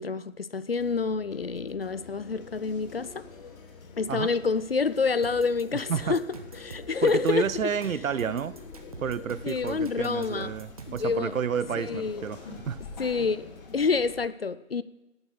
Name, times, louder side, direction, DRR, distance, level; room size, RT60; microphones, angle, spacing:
voice 1, 0.0-3.2 4.0-6.3 6.6-7.5 9.4-10.5 10.9-11.4 11.8-12.2 13.0-14.8, left 4 dB, 50° left, 0.5 m, -28 dB
sound 1, 0.8-14.3, left 5 dB, 85° left, 1.1 m, -52 dB
sound 2, 1.8-14.2, left 4 dB, 30° left, 2.2 m, -46 dB
sound 3, 5.2-11.1, right 3 dB, 25° right, 0.8 m, -45 dB
voice 2, 7.0-8.5 9.0-12.8, right 7 dB, 80° right, 0.8 m, -30 dB
17.5 x 6.8 x 4.0 m
hypercardioid pair, 165°, 40 cm